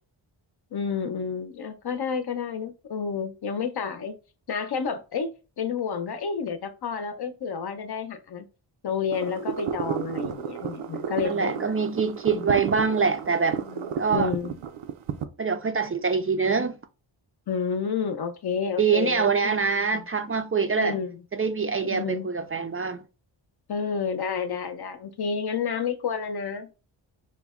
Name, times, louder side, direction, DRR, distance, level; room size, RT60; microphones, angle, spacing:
voice 1, 0.7-4.1 4.5-8.5 8.8-11.7 12.3-12.5 13.6-14.5 17.5-20.0 20.8-21.2 21.9-22.3 23.7-26.7, left 6 dB, 55° left, 0.7 m, -30 dB
sound 1, 9.1-15.2, right 8 dB, 90° right, 0.6 m, -32 dB
voice 2, 11.2-13.6 14.0-14.3 15.4-16.8 18.8-21.0 21.3-23.0, right 5 dB, 30° right, 0.4 m, -24 dB
5.8 x 2.1 x 3.6 m
wide cardioid pair, 105°, 47 cm